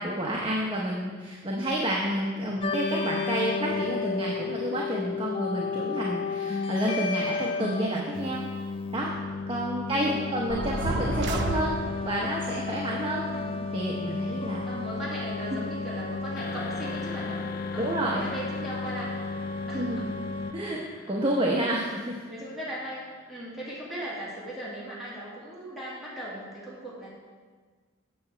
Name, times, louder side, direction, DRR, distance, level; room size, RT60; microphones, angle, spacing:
voice 1, 0.0-8.4 8.9-9.1 9.5-11.8 12.0-13.2 13.7-14.6 15.5-15.6 17.8-18.2 19.7-20.1 20.5-22.2, right 1 dB, 25° right, -3 dB, 0.8 m, -29 dB
sound 1, 2.6-20.5, left 4 dB, 30° left, 0.4 m, -33 dB
voice 2, 9.8-10.5 13.3-13.6 14.6-17.5 17.7-17.9 18.2-19.1 19.7-20.1 22.3-27.1, equal, ahead, -9 dB, 1.8 m, -38 dB
sound 2, 10.5-12.2, right 2 dB, 60° right, 0.7 m, -30 dB
sound 3, 16.4-24.1, left 3 dB, 50° left, 0.9 m, -45 dB
7.8 x 7.0 x 4.5 m, 1.5 s
head